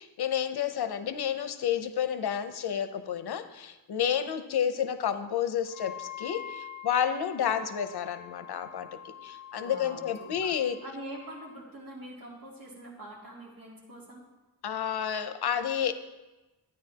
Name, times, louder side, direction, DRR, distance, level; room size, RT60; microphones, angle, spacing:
voice 1, 0.0-8.9 9.2-10.8 14.6-15.9, left 9 dB, 90° left, 10 dB, 0.7 m, -30 dB
Wind instrument woodwind instrument, 5.7-11.6, left 9 dB, 50° left, 0.5 m, -46 dB
voice 2, 9.6-10.5 10.8-14.2, right 1 dB, 60° right, -4 dB, 2.6 m, -44 dB
12.0 x 9.4 x 2.8 m, 1.1 s
wide cardioid pair, 160°, 38 cm